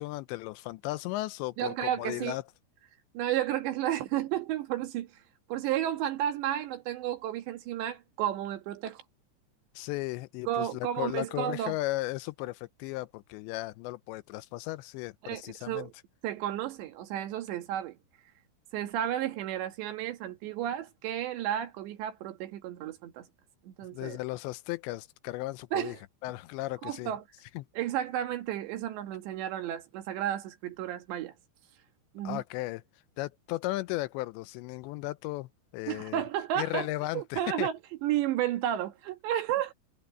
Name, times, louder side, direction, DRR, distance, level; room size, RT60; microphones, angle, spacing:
voice 1, 0.0-2.4 9.8-15.9 23.9-26.0 26.2-27.1 27.6-27.7 32.2-32.8 33.2-36.2 36.6-37.7, left 19 dB, 80° left, 2.8 m, -35 dB
voice 2, 1.6-2.4 3.2-5.1 5.5-9.0 10.5-11.8 15.2-15.9 16.2-18.0 18.7-23.3 23.6-24.2 25.7-26.0 26.8-27.2 27.8-31.3 32.2-32.4 35.9-36.9 37.2-39.7, right 11 dB, 75° right, 3.8 m, -32 dB
omnidirectional pair, 5.3 m